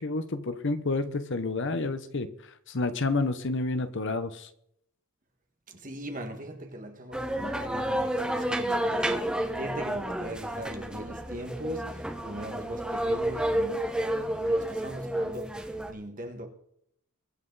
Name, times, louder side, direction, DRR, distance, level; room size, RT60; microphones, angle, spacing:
voice 1, 0.0-2.3 2.7-4.5, left 3 dB, 55° left, 1.0 m, -29 dB
voice 2, 5.7-16.5, right 1 dB, 35° right, 1.7 m, -40 dB
sound 1, 7.1-15.9, right 1 dB, 5° right, 1.2 m, -30 dB
23.0 x 8.3 x 4.0 m
head